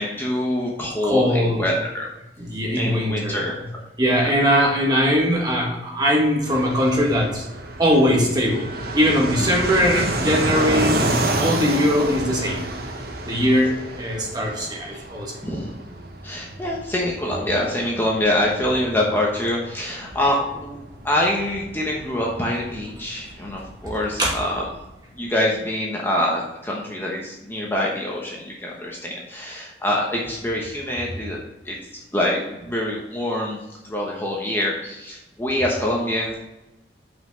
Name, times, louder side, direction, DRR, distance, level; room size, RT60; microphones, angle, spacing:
voice 1, 0.0-2.1 2.7-3.8 4.2-4.3 14.9-15.0 15.4-15.7 16.2-24.6 25.2-31.4 31.6-31.8 32.1-36.3, left 1 dB, 10° left, -3 dB, 1.0 m, -25 dB
voice 2, 1.0-1.7 2.4-3.5 4.0-7.4 7.8-8.7 8.9-11.1 11.4-12.6 13.2-15.3 23.8-23.9 24.2-24.4, equal, 25° right, -1 dB, 1.7 m, -20 dB
Fixed-wing aircraft airplane, 6.5-24.8, right 1 dB, 55° right, 1.0 m, -30 dB
5.9 x 5.8 x 5.4 m, 0.97 s
head